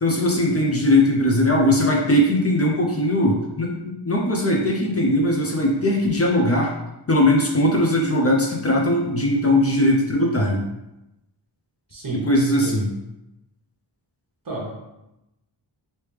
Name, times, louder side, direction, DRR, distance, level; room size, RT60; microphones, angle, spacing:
voice 1, 0.0-6.7 7.1-10.7 12.1-12.9, left 1 dB, 35° left, -1 dB, 0.6 m, -20 dB
voice 2, 11.9-12.8 14.4-14.7, right 3 dB, 50° right, -2 dB, 1.0 m, -31 dB
3.2 x 2.8 x 3.2 m, 0.93 s
wide cardioid pair, 100°, 45 cm